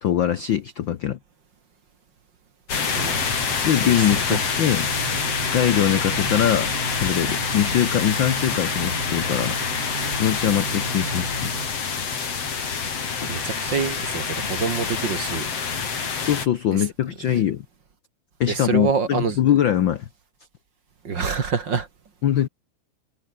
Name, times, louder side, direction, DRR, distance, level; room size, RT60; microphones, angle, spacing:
voice 1, 0.0-1.2 3.6-4.9 5.3-6.7 7.0-9.8 10.2-11.5 16.2-17.6 18.4-20.1 22.2-22.5, left 10 dB, 80° left, 1.0 m, -22 dB
sound 1, 2.7-16.5, left 6 dB, 50° left, 4.2 m, -26 dB
voice 2, 2.9-4.0 13.3-15.5 17.3-17.4 18.5-19.4 21.0-21.9, right 5 dB, 40° right, 2.3 m, -26 dB
sound 2, 4.3-11.7, right 5 dB, 85° right, 5.8 m, -35 dB
omnidirectional pair, 3.5 m